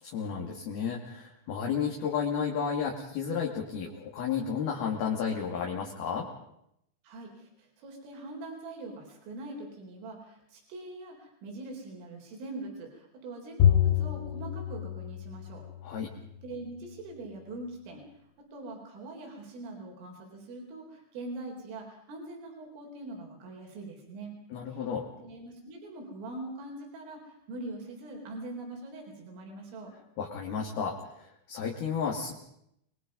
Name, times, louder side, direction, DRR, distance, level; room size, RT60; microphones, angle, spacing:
voice 1, 0.0-6.3 15.8-16.1 24.5-25.1 30.2-32.3, left 6 dB, 55° left, -1 dB, 4.2 m, -32 dB
voice 2, 7.0-15.6 16.4-18.0 18.5-24.4 24.7-24.8 25.2-29.9, right 2 dB, 85° right, 1 dB, 6.6 m, -43 dB
Bowed string instrument, 13.6-16.1, left 10 dB, 80° left, 4.1 m, -27 dB
29.5 x 21.5 x 5.4 m, 0.76 s
omnidirectional pair, 5.6 m